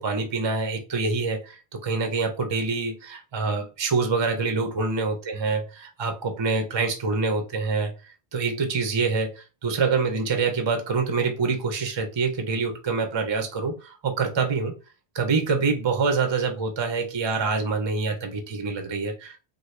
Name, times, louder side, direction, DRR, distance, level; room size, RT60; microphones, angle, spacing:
voice 1, 0.0-7.9 8.3-14.7 15.1-19.4, right 4 dB, 35° right, 5 dB, 0.5 m, -26 dB
3.9 x 2.1 x 3.2 m, 0.32 s
omnidirectional pair, 1.1 m